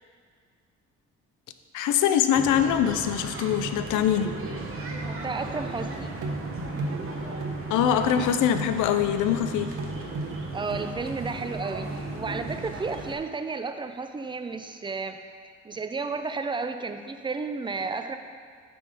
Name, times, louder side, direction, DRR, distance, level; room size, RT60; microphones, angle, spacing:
voice 1, 1.7-4.3 7.7-9.7, left 9 dB, 85° left, 9 dB, 0.5 m, -23 dB
sound 1, 2.3-13.1, right 2 dB, 45° right, 1.0 m, -35 dB
voice 2, 5.0-6.1 10.5-15.2 15.6-18.2, right 4 dB, 15° right, 8 dB, 0.4 m, -32 dB
sound 2, 5.5-5.6 6.2-8.9 9.2-9.5 9.8-11.2 11.4-11.6, right 2 dB, 90° right, 0.9 m, -38 dB
8.6 x 3.5 x 5.2 m, 2.1 s
cardioid pair, 90°, 30 cm